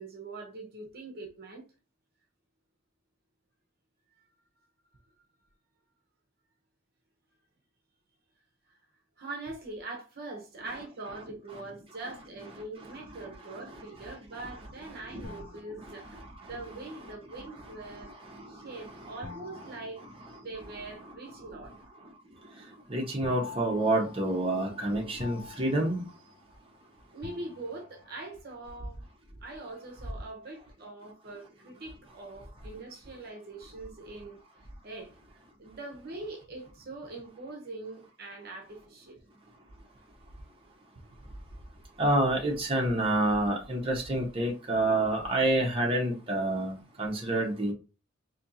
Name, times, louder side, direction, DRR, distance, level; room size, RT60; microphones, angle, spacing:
voice 1, 0.0-1.7 9.2-16.2 16.5-18.1 18.5-20.0 20.4-21.7 27.1-29.0 29.4-34.4 34.8-35.1 35.6-39.2, right 2 dB, 50° right, 0.9 m, -42 dB
sound 1, 15.2-16.4 19.2-20.9 23.2-26.8 27.2-28.2, left 5 dB, 40° left, 0.6 m, -47 dB
voice 2, 22.9-26.0 42.0-47.7, right 1 dB, 30° right, 1.0 m, -28 dB
4.3 x 2.9 x 2.7 m
head